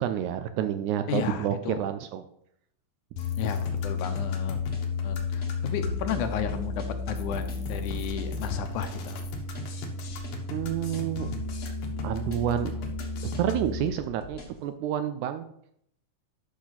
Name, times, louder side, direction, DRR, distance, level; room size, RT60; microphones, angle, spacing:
voice 1, 0.0-2.2 10.5-11.3 12.0-12.7 13.4-15.4, right 10 dB, 80° right, 9 dB, 1.8 m, -29 dB
voice 2, 1.1-1.9 3.4-4.6 5.0-9.2, left 7 dB, 75° left, 8 dB, 2.1 m, -33 dB
sound 1, 3.2-13.8, left 4 dB, 60° left, 1.6 m, -33 dB
sound 2, 3.9-14.6, left 2 dB, 40° left, 0.9 m, -46 dB
12.0 x 6.2 x 4.1 m, 0.72 s
omnidirectional pair, 3.8 m